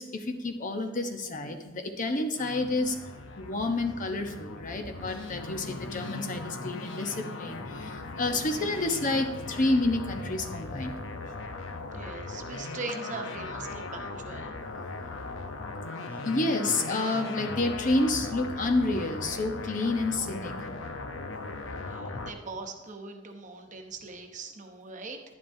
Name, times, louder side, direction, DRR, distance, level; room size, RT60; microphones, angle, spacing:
voice 1, 0.0-3.0 3.4-11.0 16.2-20.5, left 2 dB, 40° left, 5 dB, 0.9 m, -29 dB
sound 1, 2.4-22.3, left 3 dB, 90° left, 0.8 m, -38 dB
voice 2, 11.9-14.5 21.9-25.2, right 3 dB, 40° right, 4 dB, 1.0 m, -41 dB
11.0 x 10.5 x 2.7 m, 1.1 s
head